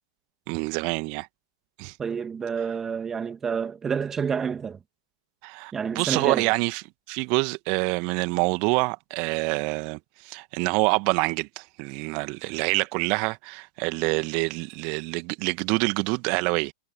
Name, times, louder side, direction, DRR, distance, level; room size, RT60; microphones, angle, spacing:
voice 1, 0.5-1.3 1.8-2.0 5.4-16.7, right 32 dB, 40° right, 2.0 m, -26 dB
voice 2, 2.0-4.8 5.7-6.5, right 6 dB, 15° right, 2.3 m, -29 dB
figure-of-eight pair, 100°, 2 cm